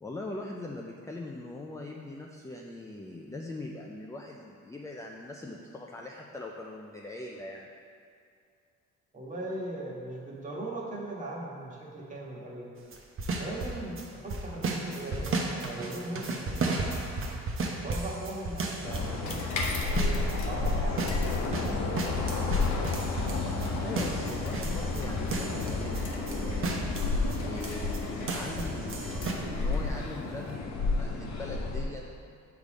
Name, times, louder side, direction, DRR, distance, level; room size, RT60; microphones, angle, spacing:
voice 1, 0.0-7.7 23.8-26.8 27.4-32.0, left 2 dB, 10° left, -1 dB, 0.4 m, -41 dB
voice 2, 9.1-12.7 13.3-17.0 17.7-20.2 20.5-21.3, right 1 dB, 25° right, -4 dB, 1.4 m, -39 dB
sound 1, 12.9-14.0 14.3-20.4 20.6-28.0 28.3-29.3, right 3 dB, 45° right, 0.8 m, -33 dB
sound 2, 18.8-31.8, left 3 dB, 65° left, 0.9 m, -31 dB
sound 3, 19.3-30.6, left 2 dB, 85° left, 0.9 m, -44 dB
6.4 x 3.6 x 5.0 m, 2.3 s
cardioid pair, 90°, 30 cm